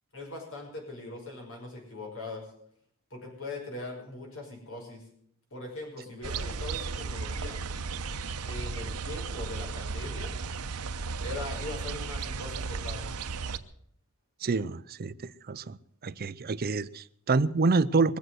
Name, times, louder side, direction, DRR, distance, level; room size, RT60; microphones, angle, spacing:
voice 1, 0.1-2.5 3.1-5.1 5.5-7.6 8.5-10.3 11.2-13.1, left 2 dB, 60° left, 0 dB, 5.8 m, -41 dB
sound 1, 6.2-13.6, right 4 dB, 85° right, 0.8 m, -35 dB
voice 2, 14.4-15.8 16.0-18.2, right 3 dB, 45° right, 15 dB, 0.5 m, -27 dB
22.0 x 7.8 x 7.9 m, 0.68 s
head